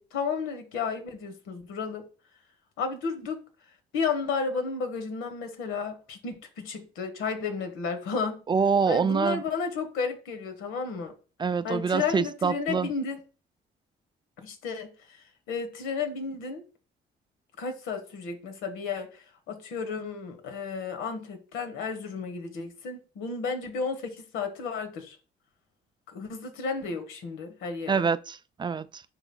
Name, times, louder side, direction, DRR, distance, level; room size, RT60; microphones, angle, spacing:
voice 1, 0.0-2.1 2.8-3.4 3.9-8.4 8.9-11.1 11.6-13.2 14.4-16.6 17.6-25.2 26.1-28.0, left 5 dB, 90° left, 1.2 m, -33 dB
voice 2, 8.5-9.4 11.4-12.9 27.9-29.0, right 5 dB, 25° right, 0.3 m, -26 dB
11.0 x 4.0 x 2.2 m
cardioid pair, 90°, 20 cm